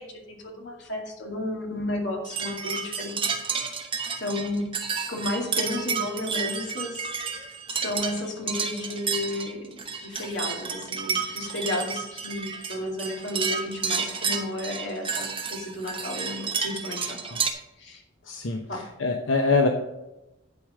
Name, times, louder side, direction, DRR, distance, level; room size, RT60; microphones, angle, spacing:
voice 1, 0.0-3.3 4.2-4.7 5.1-17.4 17.8-18.0 18.7-18.9, left 1 dB, 70° left, 0 dB, 2.3 m, -33 dB
sound 1, 2.2-17.5, right 6 dB, 25° right, 1.0 m, -31 dB
voice 2, 18.2-19.7, left 3 dB, 90° left, 3 dB, 0.9 m, -24 dB
11.0 x 5.0 x 6.3 m, 0.93 s
head